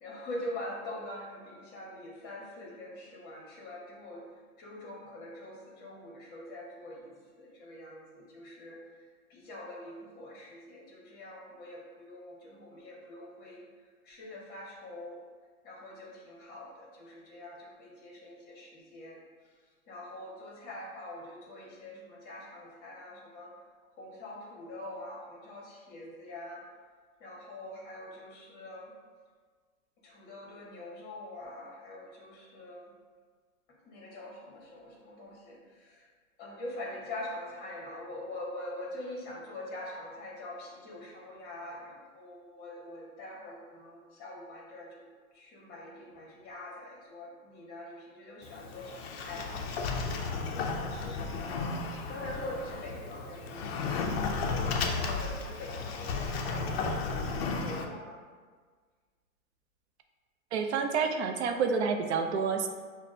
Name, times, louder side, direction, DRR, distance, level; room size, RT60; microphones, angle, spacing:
voice 1, 0.0-4.2 4.6-8.8 9.3-13.6 14.0-15.2 15.6-19.2 19.9-23.5 24.0-26.6 27.2-28.9 30.0-32.9 33.8-36.1 36.4-45.0 45.3-51.7 52.0-54.0 54.6-58.2, left 1 dB, 25° left, -3 dB, 0.9 m, -44 dB
Sliding door, 48.4-57.8, left 4 dB, 50° left, 0.4 m, -34 dB
voice 2, 60.5-62.7, right 5 dB, 55° right, 5 dB, 0.4 m, -29 dB
5.7 x 2.1 x 2.6 m, 1.5 s
hypercardioid pair, 150°, 43 cm